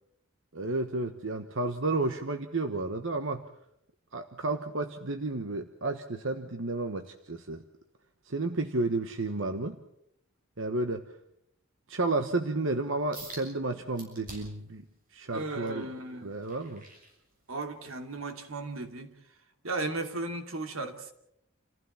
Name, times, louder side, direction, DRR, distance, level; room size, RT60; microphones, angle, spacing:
voice 1, 0.5-3.4 4.1-7.6 8.3-9.8 10.6-11.0 11.9-14.9 15.1-15.9 16.2-16.8, right 2 dB, 65° right, 1.3 m, -32 dB
sound 1, 13.1-13.5 14.0-14.7 15.2-17.7 18.2-18.4 19.0-19.1, right 2 dB, 45° right, 7.2 m, -47 dB
voice 2, 15.3-16.3 17.5-19.1 19.6-21.1, right 2 dB, 90° right, 2.8 m, -35 dB
28.5 x 15.5 x 7.2 m
head